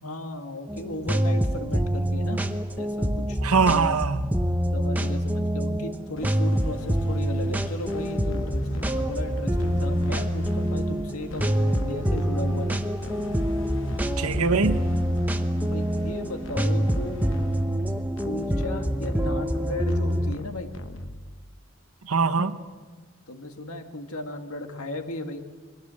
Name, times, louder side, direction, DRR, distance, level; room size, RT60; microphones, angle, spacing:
voice 1, 0.0-2.4 2.7-3.4 4.7-12.8 15.6-17.2 18.2-20.7 23.3-25.4, left 2 dB, 85° left, 2.0 m, -35 dB
sound 1, 0.7-20.4, equal, 10° right, 0.9 m, -26 dB
voice 2, 3.4-4.3 14.2-14.8 22.0-22.6, right 5 dB, 90° right, 1.1 m, -22 dB
sound 2, 6.2-21.6, left 1 dB, 60° left, 1.2 m, -40 dB
22.5 x 19.0 x 7.7 m
head